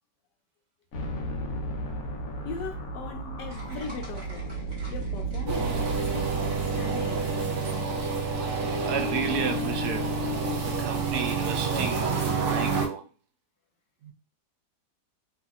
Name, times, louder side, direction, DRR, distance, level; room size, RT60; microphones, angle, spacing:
sound 1, 0.9-9.0, right 3 dB, 65° left, 1.1 m, -35 dB
voice 1, 2.4-4.4 4.9-7.2, left 5 dB, 85° left, 1.3 m, -39 dB
sound 2, 3.5-6.7 7.6-7.8 8.4-8.7, right 1 dB, 30° right, 1.2 m, -49 dB
sound 3, 5.5-12.9, right 3 dB, 55° right, 0.9 m, -28 dB
voice 2, 8.8-10.3 10.6-13.1 14.0-14.1, right 7 dB, 75° right, 1.1 m, -33 dB
3.1 x 2.7 x 2.4 m
omnidirectional pair, 1.8 m